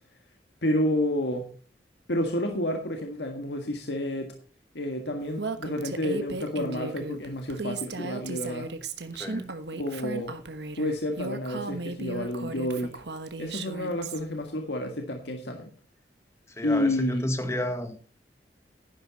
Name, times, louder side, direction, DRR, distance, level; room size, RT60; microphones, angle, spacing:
voice 1, 0.6-1.5 2.1-4.3 4.7-8.7 9.7-10.4 10.7-13.0 13.4-15.7 16.6-17.3, left 1 dB, 85° left, 1.7 m, -30 dB
Female speech woman speaking, 5.4-14.2, right 3 dB, 80° right, 1.3 m, -36 dB
voice 2, 9.1-9.5 16.6-18.0, left 1 dB, 15° left, 1.6 m, -31 dB
11.0 x 10.5 x 4.1 m
head